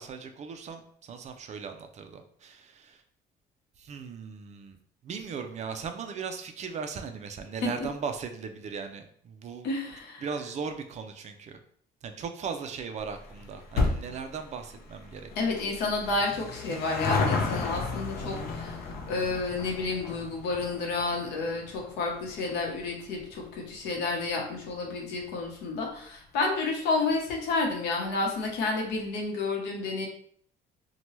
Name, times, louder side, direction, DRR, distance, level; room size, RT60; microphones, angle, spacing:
voice 1, 0.0-3.0 3.8-4.8 5.0-9.7 10.2-11.6 12.0-15.3, right 5 dB, 45° right, 7 dB, 0.4 m, -38 dB
voice 2, 9.6-10.2 15.4-18.8 19.1-30.1, left 3 dB, 85° left, 0 dB, 0.9 m, -30 dB
sound 1, 13.0-25.7 26.0-26.1 27.0-27.1 27.3-27.4 27.7-27.8, left 3 dB, 60° left, 0.6 m, -34 dB
2.8 x 2.2 x 3.0 m, 0.62 s
cardioid pair, 110°, 17 cm